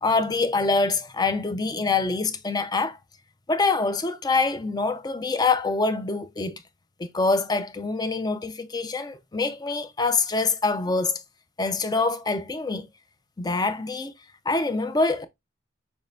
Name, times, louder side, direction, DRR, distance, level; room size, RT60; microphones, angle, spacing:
voice 1, 0.0-3.0 3.5-6.6 7.0-11.2 11.6-12.9 13.4-14.1 14.5-15.3, left 3 dB, 20° left, 0.5 m, -25 dB
6.1 x 3.2 x 2.5 m
head